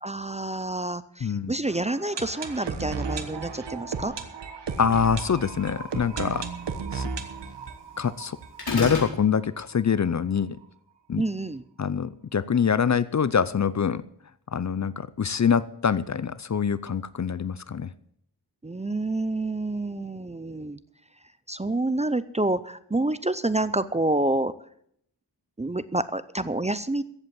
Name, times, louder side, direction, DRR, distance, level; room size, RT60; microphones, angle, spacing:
voice 1, 0.0-4.1 11.2-11.6 18.6-20.8 21.5-24.5 25.6-27.0, right 2 dB, 15° right, 14 dB, 0.5 m, -28 dB
voice 2, 1.2-1.5 4.8-6.4 6.9-7.1 8.0-8.4 8.7-10.6 11.1-11.2 11.8-14.0 14.5-17.9, left 7 dB, 45° left, 17 dB, 0.5 m, -25 dB
sound 1, 1.7-9.4 9.7-9.8 10.0-10.1 10.6-10.7, right 5 dB, 85° right, 1.4 m, -35 dB
sound 2, 8.6-9.1, left 3 dB, 65° left, 4.7 m, -27 dB
15.0 x 8.1 x 7.5 m, 0.68 s
wide cardioid pair, 100°, 41 cm